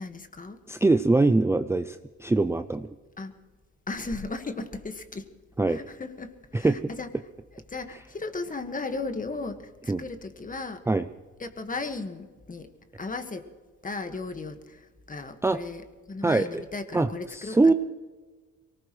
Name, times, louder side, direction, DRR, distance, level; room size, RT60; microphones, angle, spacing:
voice 1, 0.0-0.6 3.2-3.3 3.9-5.3 5.7-7.1 7.5-10.8 11.4-12.7 13.0-13.5 13.8-17.7, left 3 dB, 25° left, 8 dB, 1.7 m, -36 dB
voice 2, 0.7-2.9 5.6-5.8 6.5-6.8 9.9-10.0 10.9-11.1 15.4-15.6 16.2-16.6 16.9-17.7, right 3 dB, 10° right, 10 dB, 0.5 m, -23 dB
23.5 x 19.0 x 3.2 m, 1.4 s
cardioid pair, 90°, 30 cm